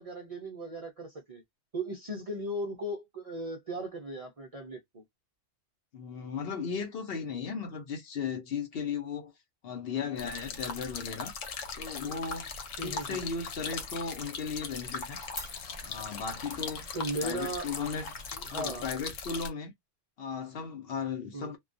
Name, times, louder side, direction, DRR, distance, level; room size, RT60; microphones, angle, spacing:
voice 1, 0.0-1.4 1.7-5.0 12.0-12.1 12.8-13.2 16.9-17.7 18.3-18.9 21.3-21.5, right 1 dB, 50° right, 0.4 m, -37 dB
voice 2, 5.9-9.3 9.6-11.3 11.7-12.5 12.8-15.2 15.8-16.8 17.2-18.1 18.5-19.7 20.2-21.6, left 5 dB, 60° left, 0.8 m, -36 dB
sound 1, 10.2-19.5, left 5 dB, 90° left, 1.0 m, -39 dB
Glass, 12.7-19.0, left 2 dB, 35° left, 1.0 m, -50 dB
2.2 x 2.2 x 2.5 m
omnidirectional pair, 1.3 m